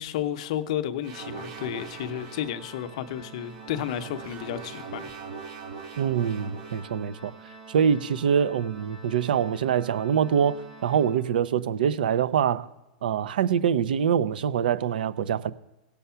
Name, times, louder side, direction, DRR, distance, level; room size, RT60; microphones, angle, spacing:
voice 1, 0.0-5.1, left 10 dB, 45° left, 0.7 m, -32 dB
Organ, 1.0-11.8, right 3 dB, 15° right, 1.1 m, -48 dB
sound 1, 1.0-2.6 3.4-7.0, right 5 dB, 35° right, 2.0 m, -41 dB
voice 2, 6.0-7.3 7.7-12.7 13.0-15.5, right 8 dB, 80° right, 0.6 m, -24 dB
17.0 x 7.0 x 5.7 m
supercardioid pair, 175°, 5 cm